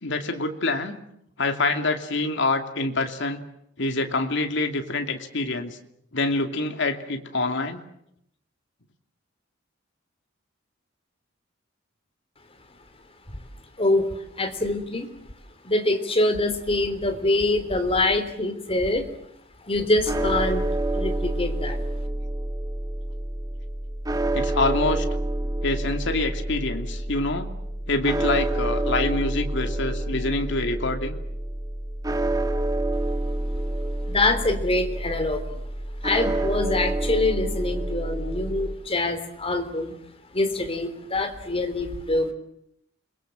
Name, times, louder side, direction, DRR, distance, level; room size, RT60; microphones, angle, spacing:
voice 1, 0.0-1.0 1.4-3.4 3.8-5.8 6.1-7.8 24.3-25.1 25.6-27.5 27.9-31.2, left 2 dB, 65° left, 5 dB, 2.7 m, -26 dB
voice 2, 13.8-15.1 15.6-19.1 19.6-20.7 20.9-21.8 34.0-35.6 36.0-40.0 40.3-42.3, left 2 dB, 30° left, 8 dB, 3.4 m, -25 dB
sound 1, 20.0-38.7, right 1 dB, 20° right, 1.5 m, -28 dB
29.0 x 22.5 x 7.8 m, 0.77 s
head